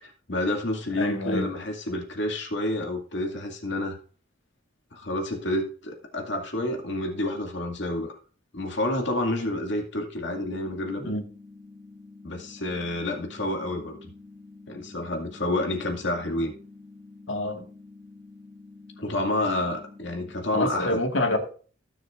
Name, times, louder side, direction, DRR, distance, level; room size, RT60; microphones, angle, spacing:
voice 1, 0.0-4.0 4.9-8.1 8.5-11.2 12.2-14.1 14.7-16.5 19.0-21.0, left 1 dB, 65° left, 2.3 m, -29 dB
voice 2, 1.0-1.5 11.0-11.2 17.3-17.6 20.5-21.5, left 1 dB, 85° left, 1.9 m, -27 dB
sound 1, 10.3-20.3, left 3 dB, 70° right, 4.2 m, -48 dB
20.0 x 6.8 x 2.5 m
head